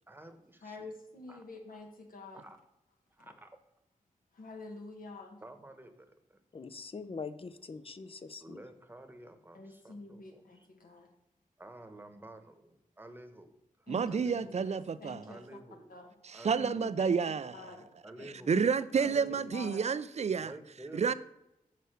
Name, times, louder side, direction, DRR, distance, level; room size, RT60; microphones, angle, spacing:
voice 1, 0.1-0.9 1.3-1.4 2.3-2.6 3.2-3.5 5.4-6.4 8.4-10.7 11.6-12.5 13.0-13.5 14.1-14.6 15.3-15.9 16.3-16.9 18.0-18.6 18.9-19.5 20.4-21.1, right 1 dB, 15° right, 8 dB, 1.0 m, -50 dB
voice 2, 0.6-2.5 3.2-3.3 4.3-5.4 9.5-11.1 13.9-15.4 15.9-16.1 16.5-17.2 17.5-17.9 19.0-19.2 19.5-19.9, left 3 dB, 85° left, 2 dB, 1.7 m, -47 dB
voice 3, 6.5-8.6 18.2-18.6, left 4 dB, 40° left, 11 dB, 0.5 m, -43 dB
voice 4, 13.9-15.2 16.2-17.6 18.5-20.5 20.9-21.1, right 6 dB, 50° right, 15 dB, 0.4 m, -30 dB
6.7 x 6.6 x 6.5 m, 0.85 s
wide cardioid pair, 125°, 14 cm